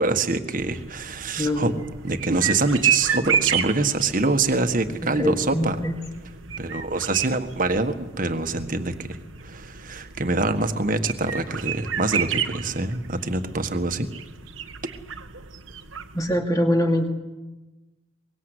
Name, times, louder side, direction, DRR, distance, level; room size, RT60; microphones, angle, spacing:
voice 1, 0.0-1.7 2.0-5.8 6.6-9.2 9.4-14.1, right 3 dB, 45° right, 8 dB, 1.6 m, -25 dB
sound 1, 0.6-16.4, right 8 dB, 85° right, 1.4 m, -31 dB
voice 2, 1.4-1.8 5.0-5.9 16.1-17.1, left 1 dB, 20° left, 3 dB, 2.6 m, -24 dB
24.0 x 22.0 x 8.1 m, 1.1 s
head